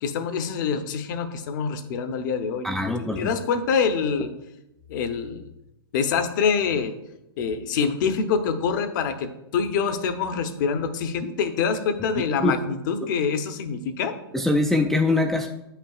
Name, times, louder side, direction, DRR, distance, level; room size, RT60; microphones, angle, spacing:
voice 1, 0.0-2.7 3.0-4.3 4.9-5.4 5.9-6.9 7.4-14.1, left 6 dB, 55° left, 8 dB, 0.8 m, -25 dB
voice 2, 2.6-3.3 12.2-12.5 14.3-15.5, left 2 dB, ahead, 2 dB, 0.4 m, -23 dB
8.6 x 5.7 x 2.4 m, 0.90 s
hypercardioid pair, 125°, 13 cm